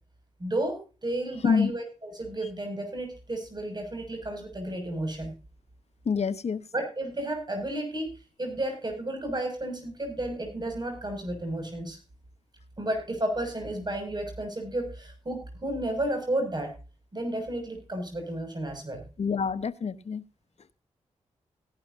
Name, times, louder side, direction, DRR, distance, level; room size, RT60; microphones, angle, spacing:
voice 1, 0.4-5.3 6.7-8.1 8.4-12.0 12.8-16.7 17.1-19.0, right 1 dB, 35° right, 6.5 m, -32 dB
voice 2, 6.1-6.6 19.2-20.2, left 6 dB, 60° left, 1.0 m, -26 dB
17.0 x 11.5 x 2.7 m
cardioid pair, 55°, 12 cm